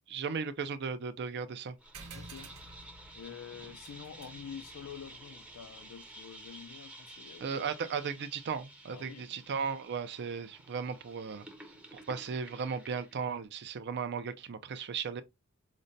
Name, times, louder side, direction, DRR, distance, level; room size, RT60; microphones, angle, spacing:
voice 1, 0.1-1.8 7.4-11.5 11.9-15.2, right 6 dB, 50° right, 0.4 m, -36 dB
sound 1, 1.8-13.3, right 1 dB, 5° right, 0.6 m, -52 dB
sound 2, 1.9-6.9, right 3 dB, 80° right, 0.9 m, -53 dB
voice 2, 2.1-2.5 3.1-7.5 8.9-9.5 11.7-11.9, left 7 dB, 80° left, 0.4 m, -48 dB
5.0 x 2.1 x 2.6 m
head